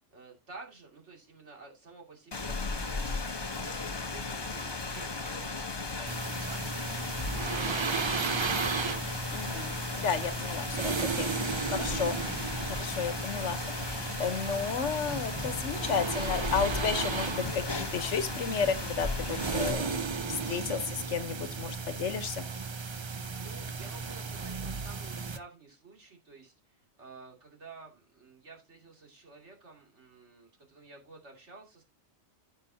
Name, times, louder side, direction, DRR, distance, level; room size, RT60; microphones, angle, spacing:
voice 1, 0.1-8.1 23.3-31.8, right 3 dB, 75° right, 2.9 m, -52 dB
Rain, 2.3-19.7, left 3 dB, 25° left, 0.8 m, -36 dB
sound 1, 6.1-25.4, right 5 dB, 35° right, 0.5 m, -35 dB
voice 2, 9.3-12.2 12.7-20.0 20.3-22.5, left 6 dB, 85° left, 1.3 m, -33 dB
14.5 x 5.7 x 2.7 m
omnidirectional pair, 1.2 m